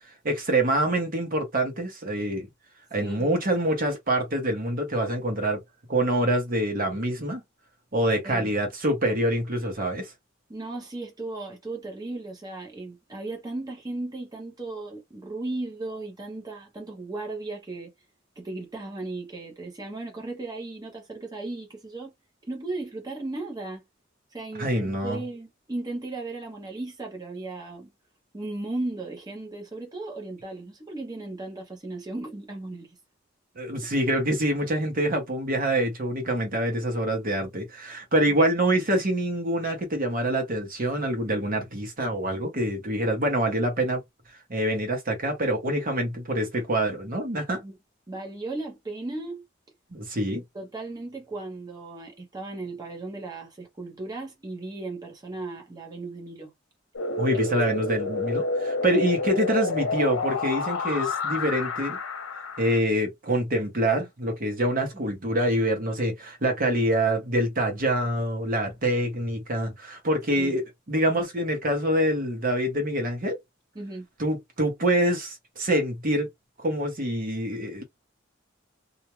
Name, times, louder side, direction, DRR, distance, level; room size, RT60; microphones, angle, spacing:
voice 1, 0.2-2.5 2.9-5.6 5.9-7.4 7.9-10.1 24.6-25.2 33.6-44.0 44.5-47.6 49.9-50.4 57.2-62.0 62.6-70.6 70.9-73.4 74.2-76.3 76.6-77.8, right 1 dB, 45° right, 0.9 m, -26 dB
voice 2, 3.0-3.3 8.2-8.5 10.5-17.9 18.4-22.1 22.5-23.8 24.3-27.9 28.3-33.0 38.3-38.4 47.6-47.8 48.1-49.4 50.5-56.5 59.0-59.1 70.3-70.6 73.7-74.1, right 2 dB, 20° right, 0.7 m, -36 dB
sound 1, 57.0-62.8, left 2 dB, 75° left, 0.8 m, -29 dB
2.4 x 2.1 x 2.9 m
head